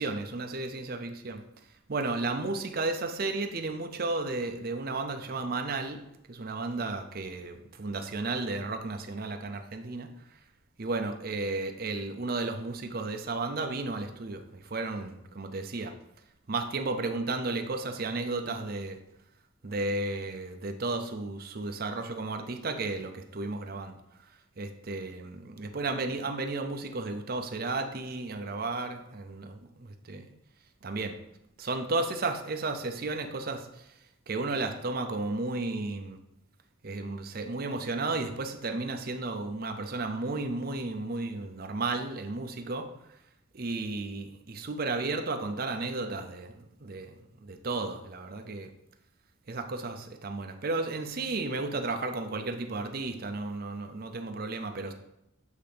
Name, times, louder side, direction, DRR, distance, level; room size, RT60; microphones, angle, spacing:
voice 1, 0.0-1.4 1.9-6.0 6.3-10.1 10.8-15.9 16.5-19.0 19.6-24.0 24.6-30.3 30.8-31.2 31.6-33.8 34.3-36.2 36.8-42.9 43.5-47.1 47.4-48.7 49.5-54.9, right 3 dB, 50° right, 5 dB, 0.6 m, -33 dB
8.2 x 2.8 x 5.1 m, 0.83 s
head